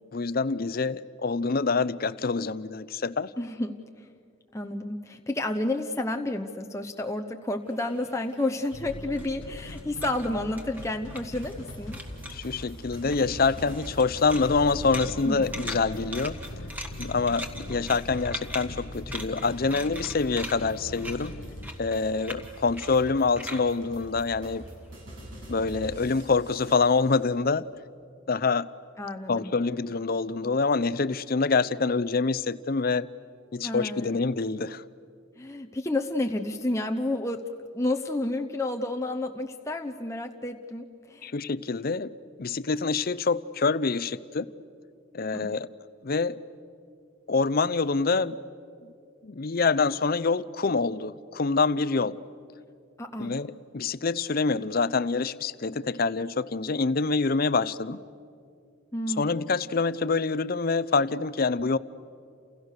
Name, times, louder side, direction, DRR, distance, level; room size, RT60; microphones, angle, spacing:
voice 1, 0.1-3.3 12.3-16.4 17.0-21.3 21.8-24.7 25.5-27.7 28.3-28.7 29.3-33.1 33.5-34.8 41.2-42.1 42.4-44.5 45.1-45.7 46.0-46.4 47.3-48.4 48.8-48.9 49.2-52.2 53.2-58.0 59.2-61.8, left 4 dB, 45° left, 0.6 m, -26 dB
voice 2, 3.4-4.1 4.5-12.0 15.3-15.4 29.0-29.5 33.6-34.1 35.4-37.5 37.7-41.3 45.3-45.5 53.0-53.3 58.9-59.2, left 1 dB, 15° left, 0.8 m, -30 dB
sound 1, 7.7-11.7 11.9-12.7 13.0-24.9, equal, 10° right, 1.6 m, -41 dB
sound 2, 8.7-21.7, left 2 dB, 70° left, 0.9 m, -42 dB
sound 3, 11.2-27.1, equal, 65° right, 7.3 m, -44 dB
29.5 x 28.5 x 6.7 m
head